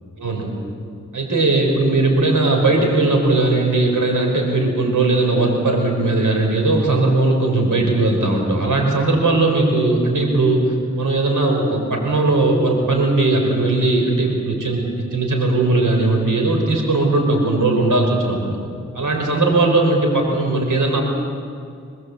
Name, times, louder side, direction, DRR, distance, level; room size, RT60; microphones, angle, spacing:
voice 1, 0.2-0.5 1.1-14.9 15.1-18.6 18.9-21.0, right 2 dB, 80° right, 1 dB, 5.0 m, -18 dB
25.0 x 21.0 x 8.1 m, 2.3 s
cardioid pair, 45°, 31 cm